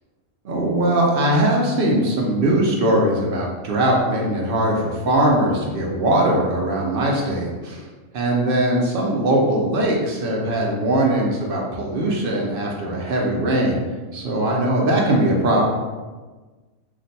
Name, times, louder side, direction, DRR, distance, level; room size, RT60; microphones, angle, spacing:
voice 1, 0.4-7.9 8.1-13.8 14.1-15.6, right 1 dB, 60° right, -2 dB, 0.6 m, -20 dB
2.5 x 2.1 x 3.9 m, 1.3 s
omnidirectional pair, 1.4 m